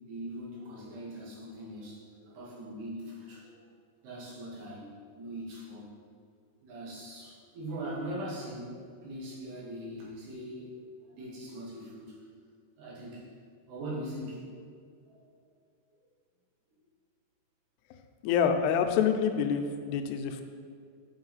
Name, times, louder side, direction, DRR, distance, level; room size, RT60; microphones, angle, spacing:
voice 1, 0.1-3.5 4.0-5.8 6.6-10.8 11.1-12.1 12.8-13.3 13.7-14.5 15.0-15.3, right 1 dB, 75° right, -5 dB, 3.6 m, -41 dB
voice 2, 18.2-20.4, left 7 dB, 85° left, 6 dB, 2.6 m, -27 dB
7.9 x 5.4 x 4.0 m, 2.2 s
omnidirectional pair, 4.7 m